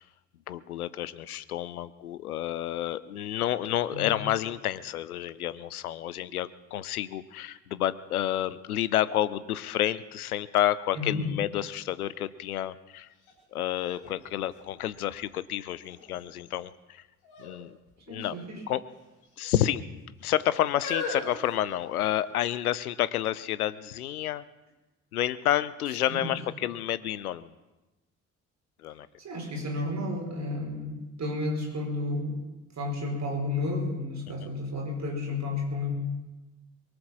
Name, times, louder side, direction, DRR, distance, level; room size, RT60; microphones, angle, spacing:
voice 1, 0.5-13.1 13.5-17.0 17.4-17.8 18.1-18.4 18.7-18.8 19.4-19.9 20.2-24.5 25.1-27.5 28.8-29.1 34.4-34.5, left 12 dB, 80° left, 17 dB, 0.6 m, -30 dB
sound 1, 13.2-13.3 13.8-15.3 15.9-16.4 17.2-17.6 17.9-18.0 18.9-19.5 20.2-22.3 23.0-23.1, left 4 dB, 55° left, 3.9 m, -39 dB
voice 2, 18.1-18.5 26.1-26.3 29.2-32.3 32.8-35.9, left 2 dB, 40° right, 1 dB, 4.9 m, -32 dB
22.5 x 7.9 x 7.2 m, 1.1 s
figure-of-eight pair, 45°, 44 cm